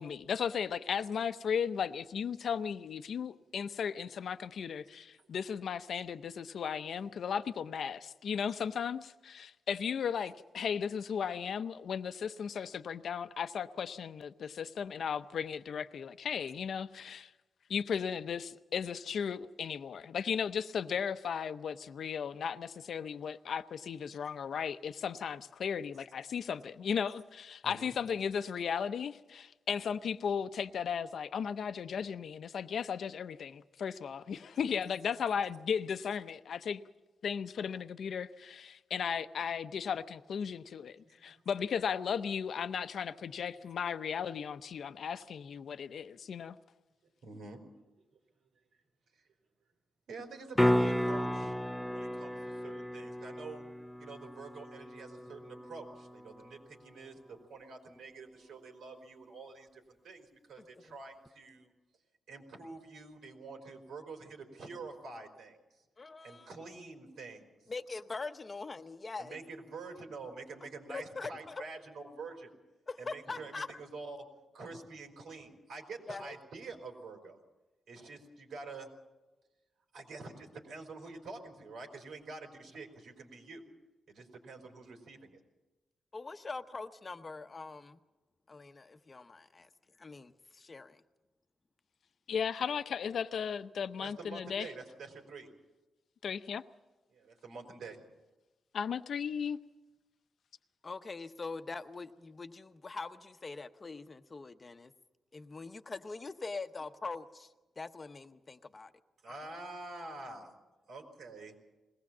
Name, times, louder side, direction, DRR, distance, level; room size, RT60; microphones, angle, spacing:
voice 1, 0.0-17.3 17.7-36.8 37.2-46.6 92.3-94.7 96.2-96.6 98.7-99.6, left 7 dB, 65° left, 12 dB, 0.7 m, -36 dB
voice 2, 27.6-28.0 34.4-34.5 41.1-41.3 47.2-47.6 47.9-48.0 50.1-51.6 51.9-53.6 54.0-61.7 62.3-65.6 66.2-67.7 69.2-72.5 73.0-74.3 74.5-77.4 77.9-78.9 79.9-83.6 84.1-85.4 94.0-95.5 97.1-98.0 109.2-110.5 110.8-111.5, right 3 dB, 90° right, 3 dB, 3.9 m, -47 dB
sound 1, 50.5-56.6 61.3-61.4, equal, ahead, 0.6 m, -33 dB
voice 3, 60.6-60.9 66.0-66.5 67.7-69.4 70.9-71.6 72.9-73.7 76.1-76.4 86.1-88.0 88.5-89.7 90.0-91.0 100.8-104.9 105.3-108.9 109.3-109.4, left 3 dB, 30° left, 10 dB, 0.8 m, -43 dB
21.5 x 18.0 x 7.3 m, 1.1 s
wide cardioid pair, 140°, 0 cm